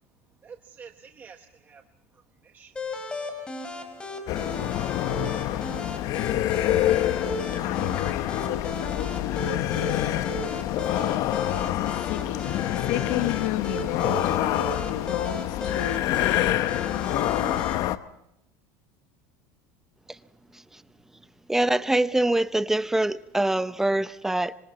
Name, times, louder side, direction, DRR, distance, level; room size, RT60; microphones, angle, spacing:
voice 1, 0.4-1.9 2.1-2.8, right 6 dB, 25° right, 1.1 m, -49 dB
sound 1, 2.8-17.8, left 1 dB, 15° left, 3.8 m, -36 dB
sound 2, 4.3-18.0, left 13 dB, 55° left, 0.9 m, -27 dB
voice 2, 7.6-9.7 11.6-16.8, left 14 dB, 75° left, 1.1 m, -33 dB
voice 3, 21.5-24.5, right 1 dB, 5° right, 0.7 m, -24 dB
26.0 x 25.5 x 4.2 m
supercardioid pair, 125°, 7 cm